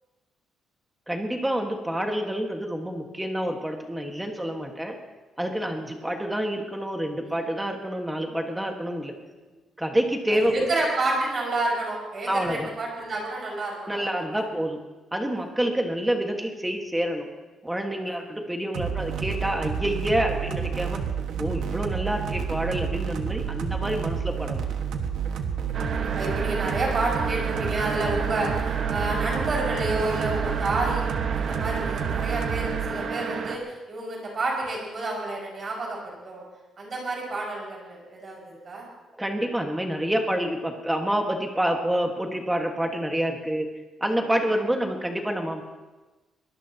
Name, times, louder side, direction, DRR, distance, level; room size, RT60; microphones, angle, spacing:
voice 1, 1.1-4.9 5.4-9.1 9.8-10.5 12.3-12.7 13.9-14.8 15.1-17.3 17.6-21.0 21.4-24.6 39.2-43.7 44.0-45.6, right 1 dB, 5° right, 2 dB, 1.6 m, -27 dB
voice 2, 10.3-14.4 15.3-15.4 18.0-18.2 21.2-21.4 25.4-31.1 31.3-36.4 36.8-38.9, right 2 dB, 30° right, -2 dB, 5.7 m, -30 dB
sound 1, 18.7-32.9, right 7 dB, 80° right, 1.5 m, -30 dB
sound 2, 25.7-33.6, right 5 dB, 50° right, 1.4 m, -31 dB
23.0 x 19.0 x 2.9 m, 1.2 s
cardioid pair, 180°, 0 cm